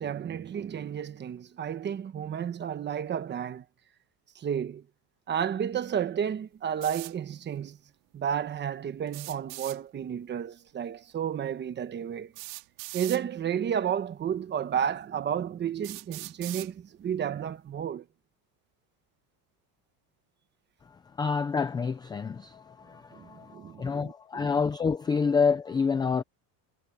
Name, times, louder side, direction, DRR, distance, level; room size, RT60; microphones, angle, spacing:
voice 1, 0.0-3.6 4.3-4.8 5.3-7.8 8.1-12.3 12.9-18.0 23.1-24.5, right 8 dB, 25° right, 1.1 m, -32 dB
sound 1, 6.8-7.1 9.1-9.8 11.2-11.3 12.3-13.2 14.2-14.3 15.0-15.1 15.8-16.7, right 25 dB, 75° right, 2.6 m, -40 dB
voice 2, 20.8-26.2, left 5 dB, 10° left, 0.4 m, -28 dB
cardioid pair, 160°, 46 cm